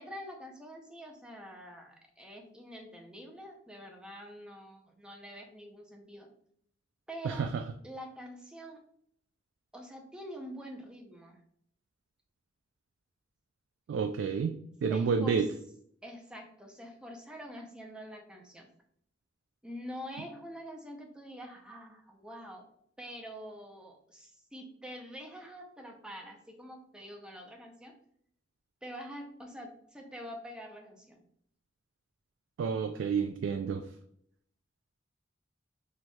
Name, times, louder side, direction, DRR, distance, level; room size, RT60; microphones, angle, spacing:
voice 1, 0.0-6.3 7.1-7.5 7.8-8.8 9.7-11.4 14.9-15.4 16.0-18.7 19.6-22.7 23.0-27.9 28.8-31.2, equal, 5° right, 1 dB, 0.6 m, -46 dB
voice 2, 7.2-7.6 13.9-15.5 32.6-33.9, right 6 dB, 85° right, 6 dB, 0.3 m, -30 dB
4.3 x 2.9 x 2.3 m, 0.66 s
head